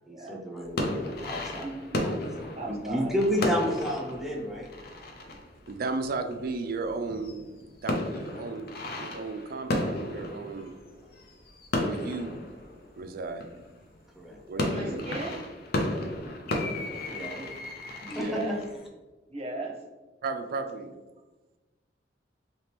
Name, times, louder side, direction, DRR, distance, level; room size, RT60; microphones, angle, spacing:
voice 1, 0.1-1.7 2.0-2.1 2.4-4.7 14.2-14.3 17.1-17.5 18.1-18.2, equal, ahead, -1 dB, 0.5 m, -31 dB
sound 1, 0.6-6.8 7.1-13.8 14.3-18.9, left 1 dB, 60° left, 0.5 m, -34 dB
voice 2, 1.6-2.1 2.6-3.7 14.6-15.4 18.1-18.6 19.3-19.8, right 2 dB, 35° right, 0 dB, 0.7 m, -37 dB
voice 3, 5.7-10.7 11.8-12.4 13.0-13.5 14.5-15.0 18.2-18.4 20.2-20.9, right 3 dB, 55° right, 7 dB, 0.4 m, -35 dB
3.3 x 2.9 x 2.9 m, 1.2 s
head